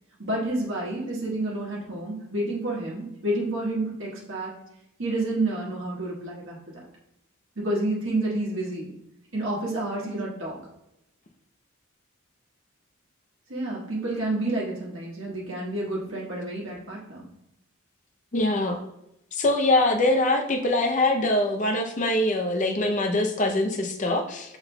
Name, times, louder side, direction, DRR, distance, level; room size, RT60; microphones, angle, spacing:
voice 1, 0.2-4.5 5.0-6.6 7.5-8.9 9.3-10.6 13.5-17.3, right 2 dB, 65° right, -4 dB, 1.4 m, -29 dB
voice 2, 18.3-18.8 19.3-24.6, left 2 dB, 35° left, 4 dB, 0.5 m, -23 dB
5.9 x 3.9 x 2.2 m, 0.85 s
head